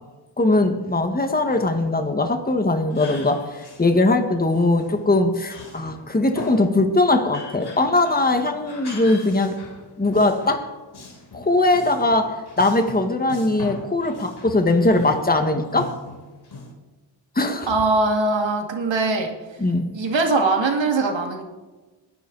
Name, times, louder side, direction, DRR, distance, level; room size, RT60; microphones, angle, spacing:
voice 1, 0.4-9.6 10.0-10.7 11.3-15.9 17.4-17.7 19.6-19.9, left 2 dB, 20° left, 5 dB, 1.8 m, -20 dB
Male speech man speaking, 1.2-1.8 2.9-4.0 4.3-6.8 7.2-10.7 10.9-16.7, left 2 dB, 60° left, 3.7 m, -40 dB
voice 2, 17.7-19.3 19.9-21.4, right 3 dB, 75° right, 2 dB, 2.6 m, -21 dB
21.0 x 10.5 x 4.1 m, 1.2 s
cardioid pair, 70°, 45 cm